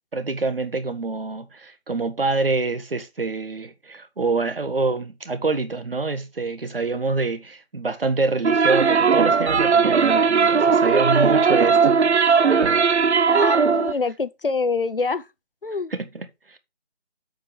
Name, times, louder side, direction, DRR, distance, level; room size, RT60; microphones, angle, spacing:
voice 1, 0.1-12.4 15.9-16.6, right 3 dB, 60° right, 1.6 m, -26 dB
sound 1, 8.4-13.9, right 5 dB, 85° right, 0.8 m, -18 dB
voice 2, 13.3-15.2 15.6-15.9, left 4 dB, 55° left, 0.8 m, -25 dB
8.5 x 5.2 x 4.9 m
figure-of-eight pair, 180°, 33 cm